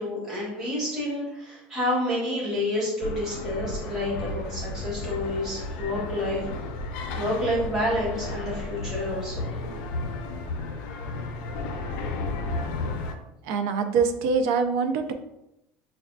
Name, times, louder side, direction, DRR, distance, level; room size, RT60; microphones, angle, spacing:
voice 1, 0.0-6.4 7.1-9.5, left 1 dB, 10° right, -10 dB, 1.5 m, -29 dB
sound 1, 3.0-13.1, left 2 dB, 75° left, 0.5 m, -33 dB
voice 2, 13.4-15.1, right 5 dB, 60° right, 7 dB, 0.4 m, -24 dB
6.2 x 2.3 x 2.4 m, 0.86 s
cardioid pair, 165°, 5 cm